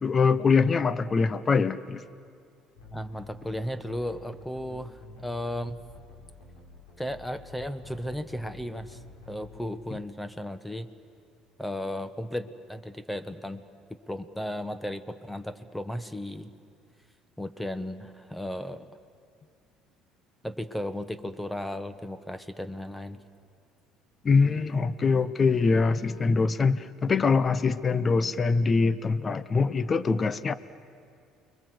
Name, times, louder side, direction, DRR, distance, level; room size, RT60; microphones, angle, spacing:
voice 1, 0.0-2.0 24.2-30.5, left 4 dB, 35° left, 16 dB, 1.0 m, -23 dB
sound 1, 2.8-9.7, left 3 dB, 85° left, 6.4 m, -49 dB
voice 2, 2.9-4.9 5.2-5.8 7.0-9.0 9.3-10.9 11.6-13.6 14.1-16.5 17.4-18.8 20.4-23.2, left 1 dB, 5° left, 12 dB, 1.3 m, -35 dB
29.5 x 22.5 x 7.9 m, 2.3 s
supercardioid pair, 75°, 0 cm